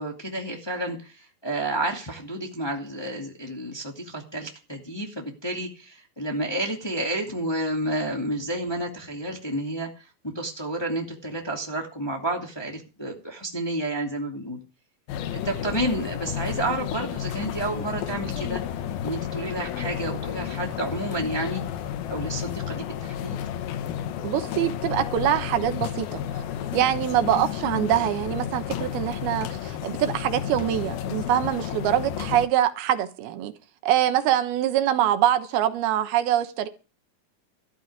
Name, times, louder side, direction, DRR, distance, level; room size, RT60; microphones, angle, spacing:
voice 1, 0.0-14.6 15.4-18.6 19.0-21.6 22.1-23.4, right 1 dB, 10° left, 1.7 m, -30 dB
sound 1, 15.1-32.5, left 10 dB, 80° left, 2.9 m, -32 dB
voice 2, 24.2-26.2 26.7-33.5 33.8-36.7, right 11 dB, 90° right, 3.1 m, -24 dB
13.5 x 6.2 x 9.5 m
omnidirectional pair, 4.3 m